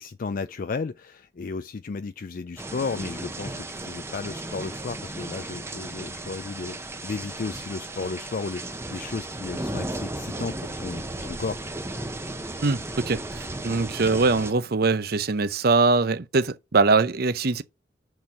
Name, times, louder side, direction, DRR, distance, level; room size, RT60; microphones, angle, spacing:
voice 1, 0.0-11.6, left 4 dB, 50° left, 0.4 m, -34 dB
sound 1, 2.6-14.5, right 2 dB, 15° right, 0.9 m, -35 dB
voice 2, 12.6-17.6, right 3 dB, 60° right, 0.7 m, -22 dB
6.4 x 6.2 x 5.8 m
head